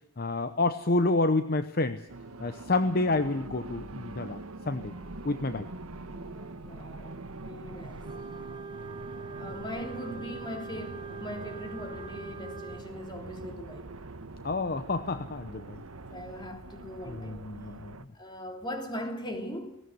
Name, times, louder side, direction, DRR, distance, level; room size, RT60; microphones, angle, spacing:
voice 1, 0.2-2.0 2.4-4.4 4.7-4.9 5.2-5.7 14.4-15.8 17.1-17.9, left 2 dB, 45° left, 0.8 m, -28 dB
sound 1, 2.1-18.1, right 2 dB, 80° right, 1.3 m, -43 dB
voice 2, 5.9-8.0 9.4-13.9 16.1-17.4 18.1-19.8, equal, 20° left, 3.3 m, -40 dB
Wind instrument woodwind instrument, 8.0-12.9, right 4 dB, 20° right, 0.7 m, -43 dB
19.0 x 17.5 x 9.6 m
head